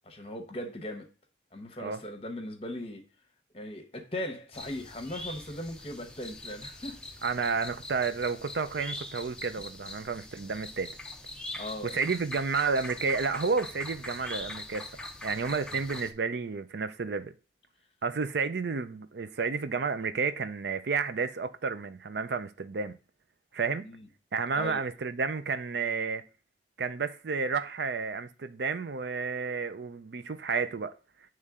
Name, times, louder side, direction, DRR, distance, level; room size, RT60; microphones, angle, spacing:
voice 1, 0.1-1.1 1.5-3.0 3.5-7.0 11.5-12.0 23.8-24.1 24.6-24.8, left 1 dB, 35° left, 0.9 m, -38 dB
sound 1, 4.5-16.1, left 2 dB, 5° left, 0.5 m, -43 dB
voice 2, 7.2-10.9 11.8-17.3 18.0-23.0 23.5-23.9 24.3-26.2 26.8-30.9, right 5 dB, 75° right, 0.5 m, -31 dB
8.1 x 3.2 x 3.6 m
head